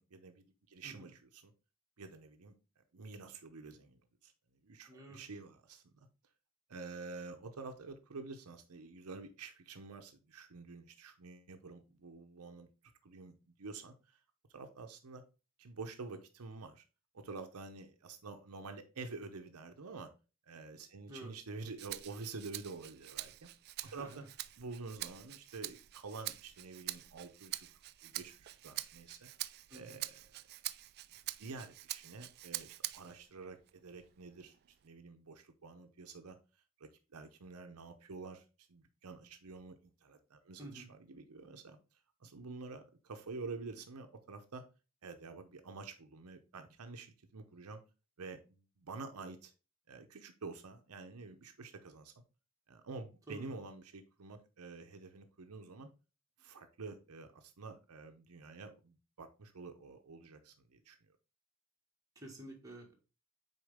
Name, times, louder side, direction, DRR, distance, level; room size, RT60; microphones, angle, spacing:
voice 1, 0.0-1.5 2.0-4.3 4.6-6.1 6.7-12.7 13.0-14.2 14.5-15.2 15.6-16.8 17.1-20.1 20.5-23.5 23.8-24.2 24.6-27.7 28.0-29.3 29.7-30.4 31.4-34.5 34.8-36.4 36.8-41.8 42.2-44.6 45.0-47.8 48.2-49.5 49.9-52.1 52.7-55.9 56.4-61.0, right 4 dB, 75° right, 6 dB, 0.7 m, -48 dB
voice 2, 4.9-5.2 21.1-21.3 23.8-24.2 29.7-30.0 40.6-40.9 53.3-53.5 62.1-62.9, right 1 dB, 15° right, -1 dB, 1.7 m, -50 dB
Rattle (instrument), 21.8-33.2 33.7-34.9, right 15 dB, 45° right, 0.3 m, -45 dB
6.3 x 4.4 x 3.5 m, 0.32 s
head